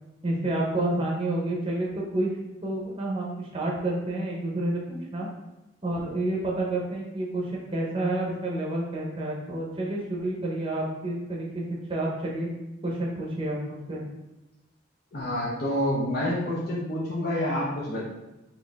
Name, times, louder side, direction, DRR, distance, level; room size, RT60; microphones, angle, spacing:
voice 1, 0.2-2.3 2.6-5.3 5.8-12.5 12.8-14.0, right 1 dB, 25° right, -3 dB, 0.7 m, -29 dB
voice 2, 15.1-18.1, left 1 dB, 55° left, -7 dB, 0.8 m, -28 dB
4.4 x 2.6 x 3.4 m, 0.99 s
head